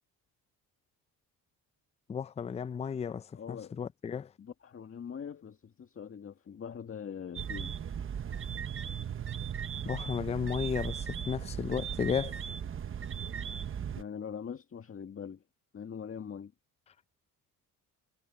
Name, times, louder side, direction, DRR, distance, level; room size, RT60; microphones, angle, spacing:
voice 1, 2.1-4.3 9.9-12.3, left 7 dB, 20° left, 0.4 m, -34 dB
voice 2, 3.3-3.8 4.4-7.8 14.0-15.4 15.7-16.5, left 7 dB, 35° left, 1.9 m, -42 dB
sound 1, 7.3-14.0, right 8 dB, 35° right, 1.0 m, -37 dB
cardioid pair, 110°, 36 cm